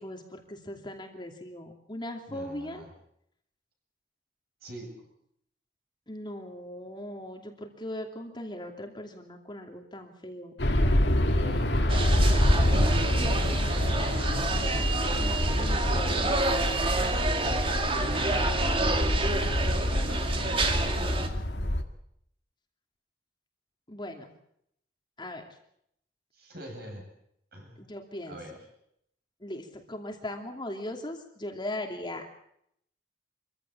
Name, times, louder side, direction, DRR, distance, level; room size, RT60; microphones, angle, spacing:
voice 1, 0.0-2.8 6.1-10.6 15.1-16.9 19.3-19.6 23.9-24.3 25.2-25.4 27.8-28.4 29.4-32.3, left 1 dB, 25° left, 3 dB, 2.8 m, -39 dB
voice 2, 2.3-2.9 4.6-5.1 11.2-13.5 18.7-21.4 26.3-27.1 27.5-27.8 28.3-28.7, equal, 60° right, 3 dB, 7.8 m, -43 dB
sound 1, 10.6-21.8, left 1 dB, 75° left, 2.0 m, -26 dB
sound 2, 11.9-21.3, right 3 dB, 30° right, 2.4 m, -29 dB
25.0 x 15.5 x 8.6 m, 0.75 s
head